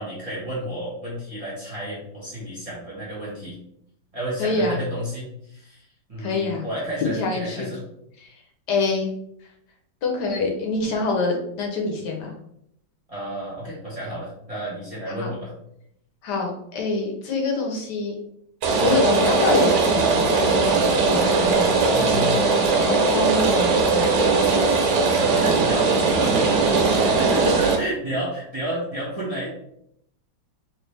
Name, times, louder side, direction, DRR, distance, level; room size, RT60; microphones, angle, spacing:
voice 1, 0.0-3.6 4.1-7.8 13.1-15.5 18.8-19.0 21.9-22.4 25.2-29.5, right 1 dB, 25° right, -7 dB, 1.0 m, -31 dB
voice 2, 4.4-4.8 6.2-6.7 7.0-7.7 8.2-8.4 8.7-9.1 10.0-12.3 15.1-15.3 16.2-18.1 18.8-20.7 21.1-24.1, left 3 dB, 75° left, 1 dB, 1.3 m, -25 dB
Rain, 18.6-27.8, right 4 dB, 80° right, 1.4 m, -19 dB
3.2 x 3.0 x 3.1 m, 0.75 s
omnidirectional pair, 1.9 m